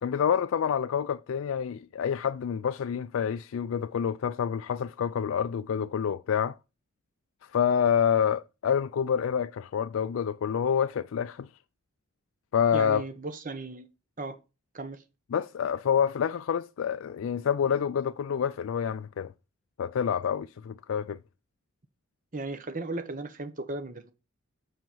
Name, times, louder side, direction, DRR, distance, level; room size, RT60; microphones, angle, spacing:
voice 1, 0.0-6.6 7.5-11.5 12.5-13.0 15.3-19.3 19.8-21.2, left 8 dB, 75° left, 0.3 m, -27 dB
voice 2, 12.7-13.9 14.2-14.4 14.7-15.0 22.3-24.1, right 2 dB, 40° right, 0.9 m, -36 dB
7.7 x 5.7 x 5.4 m
head